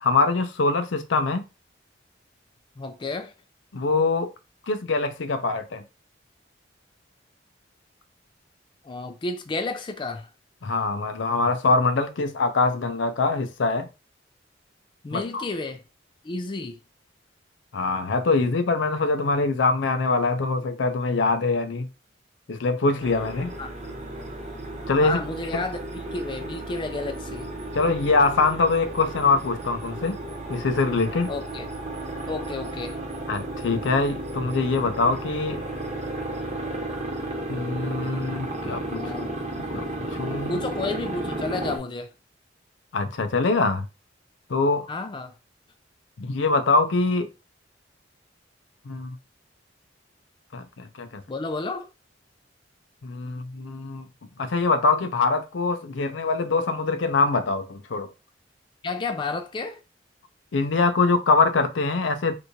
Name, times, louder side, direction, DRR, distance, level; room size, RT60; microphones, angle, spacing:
voice 1, 0.0-1.4 3.7-4.3 4.7-5.8 10.6-13.9 15.1-15.5 17.7-21.9 22.5-23.5 24.9-25.2 27.7-30.2 30.5-31.3 33.3-35.6 37.5-39.1 39.6-39.9 40.1-40.6 42.9-43.9 44.5-44.9 46.2-47.3 48.8-49.2 50.5-51.2 53.0-54.1 54.4-58.1 60.5-62.3, left 3 dB, 80° left, 0.5 m, -23 dB
voice 2, 2.8-3.3 8.8-10.3 15.0-15.8 16.2-16.8 23.6-23.9 25.0-25.8 26.1-27.5 31.3-31.7 32.3-33.0 39.0-39.4 40.5-42.1 44.9-45.3 51.3-51.9 58.8-59.8, left 3 dB, 25° left, 0.4 m, -31 dB
sound 1, 23.0-41.8, right 1 dB, 40° right, 0.8 m, -33 dB
3.3 x 3.0 x 2.8 m
head